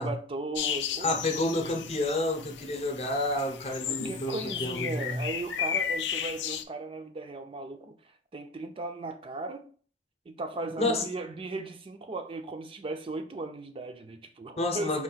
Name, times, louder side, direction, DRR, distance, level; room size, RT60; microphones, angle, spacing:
voice 1, 0.0-1.3 3.9-9.7 10.3-15.0, right 3 dB, 30° right, 0.4 m, -37 dB
sound 1, 0.6-6.6, left 8 dB, 70° left, 0.4 m, -34 dB
voice 2, 1.0-5.2 10.8-11.1 14.6-15.0, left 1 dB, 35° left, 0.7 m, -29 dB
4.6 x 2.4 x 3.9 m
head